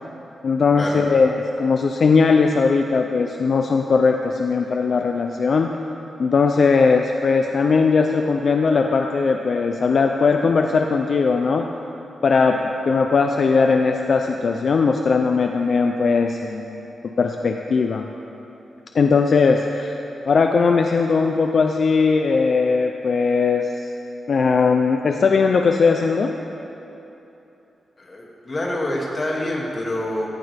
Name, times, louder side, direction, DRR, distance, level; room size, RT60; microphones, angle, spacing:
voice 1, 0.4-1.3 1.6-5.7 6.2-11.7 12.2-16.9 17.2-18.1 18.9-20.0 20.3-23.9 24.3-26.3, left 4 dB, 45° left, 4 dB, 0.6 m, -19 dB
voice 2, 28.0-30.3, left 1 dB, 25° left, -4 dB, 2.5 m, -26 dB
18.0 x 15.5 x 3.5 m, 3.0 s
wide cardioid pair, 165°, 0 cm